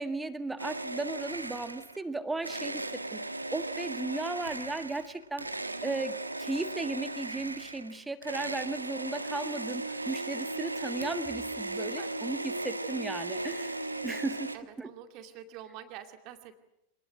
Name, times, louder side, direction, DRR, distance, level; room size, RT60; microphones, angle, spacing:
voice 1, 0.0-3.3 3.5-14.9, right 3 dB, 10° right, 10 dB, 1.7 m, -36 dB
sound 1, 0.6-2.0 2.4-14.6, right 2 dB, 85° right, 1.4 m, -37 dB
voice 2, 14.5-16.5, right 10 dB, 40° right, 6 dB, 2.4 m, -46 dB
26.5 x 19.5 x 9.0 m, 0.85 s
figure-of-eight pair, 90°, 0 cm